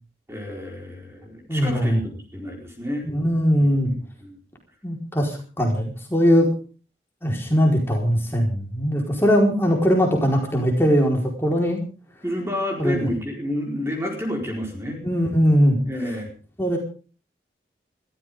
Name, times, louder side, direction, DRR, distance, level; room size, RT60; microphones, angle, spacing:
voice 1, 0.3-3.1 3.6-4.4 12.2-15.0 15.9-16.3, left 1 dB, 15° right, 1 dB, 4.5 m, -30 dB
voice 2, 1.5-2.0 3.0-3.9 4.8-6.5 7.2-11.8 12.8-13.1 15.0-15.8 16.6-16.8, equal, 15° left, 0 dB, 4.4 m, -20 dB
21.5 x 15.0 x 3.7 m, 0.38 s
head